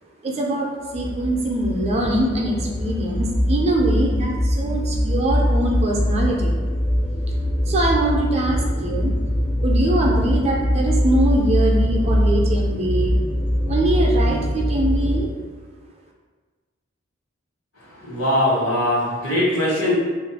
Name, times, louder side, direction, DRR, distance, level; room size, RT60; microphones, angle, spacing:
voice 1, 0.2-6.5 7.3-9.1 9.6-13.2 13.6-15.3, right 1 dB, 35° right, -1 dB, 0.5 m, -23 dB
sound 1, 0.9-15.3, equal, 25° left, 0.3 m, -22 dB
voice 2, 18.0-19.9, left 1 dB, 80° left, -6 dB, 1.3 m, -21 dB
2.5 x 2.3 x 4.0 m, 1.4 s
head